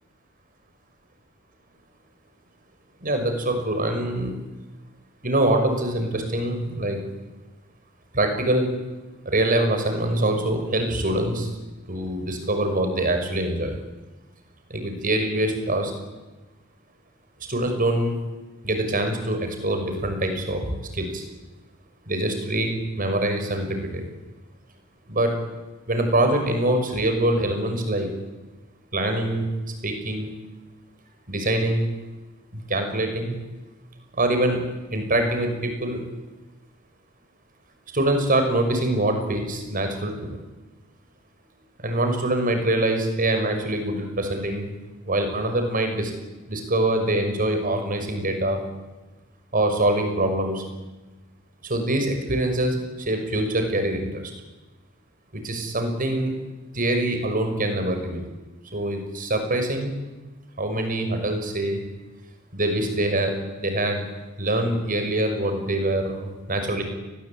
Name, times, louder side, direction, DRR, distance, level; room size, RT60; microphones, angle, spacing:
voice 1, 3.0-4.3 5.2-7.0 8.1-8.7 9.2-11.5 11.9-13.8 14.7-15.9 17.5-18.2 18.6-21.2 22.1-24.1 25.1-25.3 25.9-28.1 28.9-29.5 29.8-30.3 31.3-31.9 32.5-33.4 34.1-34.6 34.9-36.0 37.9-40.4 41.8-44.7 45.1-46.1 46.5-48.6 49.5-50.6 51.6-54.3 55.3-56.3 56.7-58.2 58.7-59.9 60.6-61.8 62.5-64.1 64.4-66.8, right 1 dB, 40° right, 5 dB, 6.0 m, -24 dB
29.5 x 20.5 x 8.9 m, 1.1 s
head